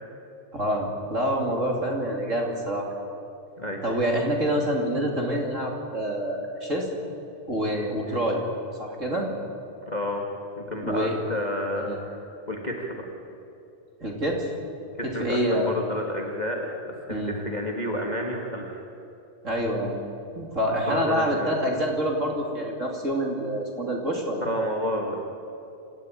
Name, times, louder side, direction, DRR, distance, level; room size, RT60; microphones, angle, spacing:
voice 1, 0.5-2.9 3.8-6.9 7.5-8.4 8.8-9.3 10.8-11.2 11.8-12.0 14.0-14.5 15.0-15.8 17.1-17.4 19.4-20.0 20.3-24.4, equal, 25° right, 0 dB, 2.7 m, -27 dB
voice 2, 9.9-10.2 10.6-12.2 12.5-13.1 15.1-18.8 20.9-21.6 24.4-25.2, equal, 20° left, 0 dB, 1.5 m, -30 dB
27.5 x 14.0 x 9.1 m, 2.7 s
omnidirectional pair, 4.0 m